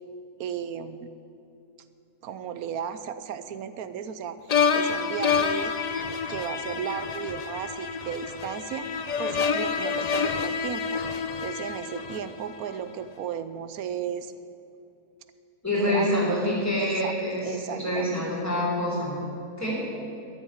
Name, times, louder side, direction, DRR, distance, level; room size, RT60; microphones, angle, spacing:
voice 1, 0.4-1.1 2.2-4.4 4.7-5.7 6.3-8.9 9.2-11.0 11.4-14.3 15.7-17.1 17.4-18.2, right 8 dB, 70° right, 12 dB, 1.1 m, -34 dB
sound 1, 4.5-12.7, left 6 dB, 80° left, 0.3 m, -28 dB
voice 2, 15.6-19.1 19.6-19.8, left 1 dB, 10° left, -4 dB, 3.5 m, -26 dB
12.5 x 7.2 x 10.0 m, 2.6 s
omnidirectional pair, 1.7 m